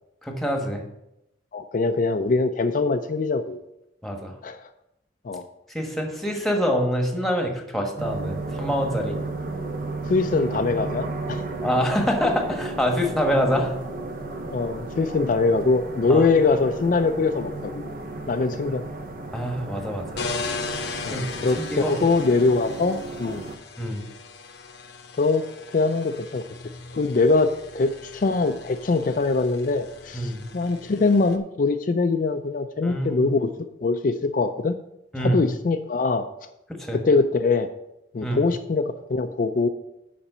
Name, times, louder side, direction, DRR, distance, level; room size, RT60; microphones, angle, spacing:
voice 1, 0.2-0.8 4.0-4.3 5.7-9.2 11.6-13.7 16.1-16.2 19.3-20.1 21.1-22.0 23.8-24.0 30.1-30.4 32.8-33.3 35.1-35.4 36.7-37.0 38.2-38.4, equal, ahead, 3 dB, 1.2 m, -25 dB
voice 2, 1.5-3.6 4.4-4.7 5.2-5.4 10.1-11.4 14.5-17.9 18.3-18.8 21.0-23.4 25.2-26.4 26.9-33.5 33.8-34.8 35.2-36.3 36.9-37.7 38.1-39.7, left 3 dB, 50° left, 7 dB, 0.4 m, -23 dB
sound 1, 8.0-23.6, right 2 dB, 50° right, 0.9 m, -33 dB
sound 2, 20.1-31.4, left 4 dB, 70° left, 0.8 m, -38 dB
7.1 x 5.2 x 6.7 m, 0.85 s
head